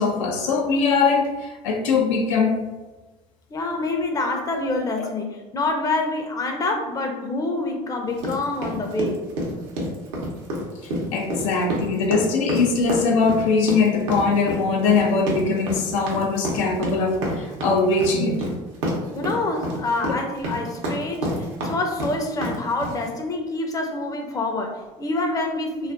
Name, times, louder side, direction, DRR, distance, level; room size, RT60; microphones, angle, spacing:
voice 1, 0.0-2.7 10.8-18.4, left 4 dB, 85° left, 2 dB, 0.5 m, -21 dB
voice 2, 3.5-9.2 19.1-25.9, left 2 dB, 20° left, 3 dB, 0.5 m, -26 dB
sound 1, 8.2-23.1, equal, 85° right, 0.7 m, -29 dB
2.4 x 2.4 x 2.4 m, 1.1 s
supercardioid pair, 85°, 16 cm